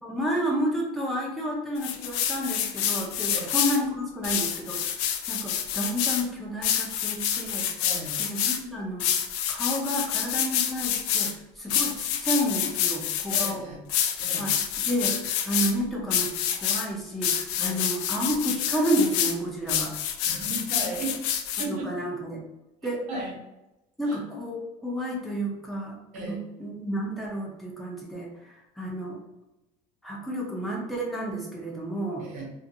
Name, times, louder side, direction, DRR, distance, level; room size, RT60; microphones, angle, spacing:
voice 1, 0.0-4.9 5.3-7.8 8.2-9.1 9.5-13.7 14.4-19.9 21.6-22.4 22.8-23.0 24.0-29.2 30.0-32.3, equal, ahead, -3 dB, 0.6 m, -31 dB
sound 1, 1.8-3.8 4.2-6.2 6.6-8.6 9.0-11.3 11.7-13.5 13.9-15.7 16.1-16.9 17.2-19.3 19.7-21.7, left 9 dB, 90° left, 0.4 m, -27 dB
voice 2, 7.8-8.1 13.3-13.8 14.2-14.5 17.6-17.8 20.2-21.2 21.6-22.1 23.1-23.3 24.1-24.2 26.1-26.4 32.2-32.5, right 2 dB, 55° right, -2 dB, 1.1 m, -35 dB
2.5 x 2.4 x 2.7 m, 0.95 s
cardioid pair, 145°, 15 cm